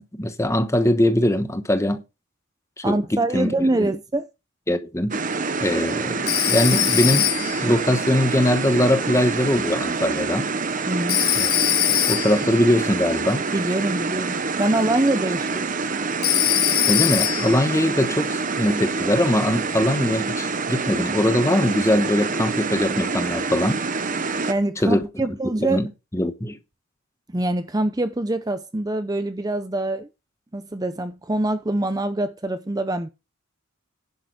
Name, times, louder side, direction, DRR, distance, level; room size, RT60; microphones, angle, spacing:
voice 1, 0.0-2.0 2.8-3.5 4.7-5.1 5.6-7.3 7.6-10.5 11.4-11.5 12.1-13.4 16.8-23.8 24.8-25.1 25.7-25.9 26.1-26.6, left 1 dB, 15° left, 1.1 m, -21 dB
voice 2, 2.8-4.3 10.9-11.3 13.5-15.7 24.5-25.9 27.3-30.1 30.5-33.1, right 2 dB, 20° right, 0.6 m, -24 dB
sound 1, 5.1-24.5, right 4 dB, 40° right, 1.0 m, -26 dB
Telephone, 6.3-7.7 11.1-12.5 16.2-17.6, left 20 dB, 85° left, 0.4 m, -22 dB
10.5 x 6.6 x 4.8 m
head